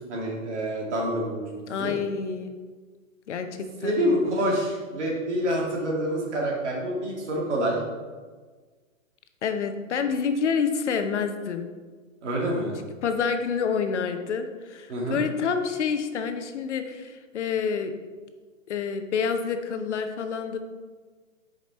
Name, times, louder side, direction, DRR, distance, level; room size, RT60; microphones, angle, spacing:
voice 1, 0.1-1.9 3.8-7.8 12.2-12.8 14.9-15.2, equal, 60° right, -2 dB, 2.1 m, -27 dB
voice 2, 1.7-2.5 3.3-4.0 9.4-11.7 13.0-17.9 18.7-20.6, left 6 dB, 60° left, 7 dB, 0.8 m, -28 dB
6.5 x 5.2 x 4.3 m, 1.4 s
hypercardioid pair, 170°, 40 cm